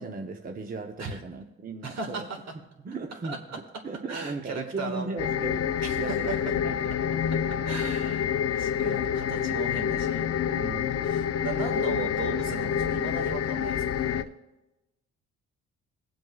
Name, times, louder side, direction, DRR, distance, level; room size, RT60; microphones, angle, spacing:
voice 1, 0.0-2.3 2.8-7.2 10.5-11.2 11.7-11.9, right 3 dB, 30° right, 4 dB, 0.8 m, -37 dB
voice 2, 1.8-2.4 3.2-3.6 4.1-5.1 5.8-6.5 7.3-7.4 7.6-10.2 11.1-14.2, right 4 dB, 60° right, 3 dB, 1.8 m, -37 dB
sound 1, 5.2-14.2, left 8 dB, 55° left, 0.6 m, -28 dB
21.0 x 7.6 x 2.4 m, 1.0 s
cardioid pair, 90°, 30 cm